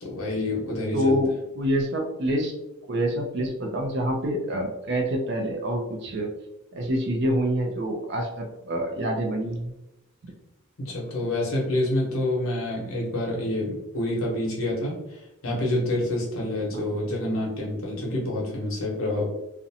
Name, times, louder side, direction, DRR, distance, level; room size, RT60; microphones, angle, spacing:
voice 1, 0.0-1.2 10.8-19.3, left 1 dB, 65° left, -3 dB, 0.9 m, -27 dB
voice 2, 0.9-2.5 2.9-6.3 6.7-9.7 16.7-16.8, equal, 50° right, 2 dB, 0.5 m, -26 dB
2.5 x 2.1 x 2.7 m, 0.91 s
head